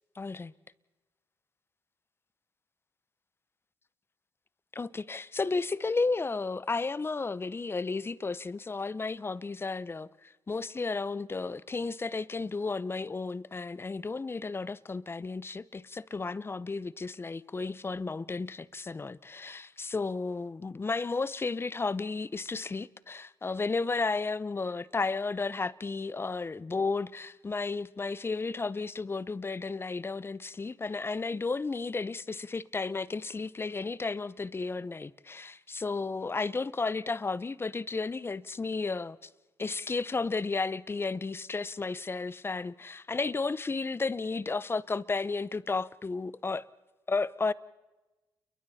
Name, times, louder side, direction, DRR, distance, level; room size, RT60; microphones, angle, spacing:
voice 1, 0.2-0.5 4.7-39.2 39.6-46.7 47.1-47.5, left 4 dB, 25° left, 0.7 m, -33 dB
29.5 x 22.5 x 4.2 m
cardioid pair, 80°, 9 cm